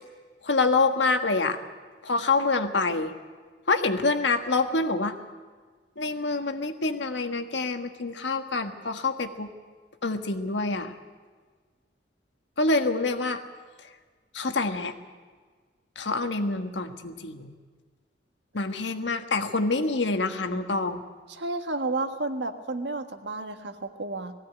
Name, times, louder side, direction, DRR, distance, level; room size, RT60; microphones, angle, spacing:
voice 1, 0.4-1.6 2.0-3.1 3.7-5.1 6.0-9.5 10.0-10.9 12.6-13.4 14.3-14.9 15.9-17.5 18.5-21.0, left 3 dB, 85° left, 7 dB, 1.5 m, -26 dB
voice 2, 21.3-24.3, right 2 dB, 80° right, 7 dB, 1.6 m, -31 dB
19.0 x 16.0 x 9.3 m, 1.5 s
head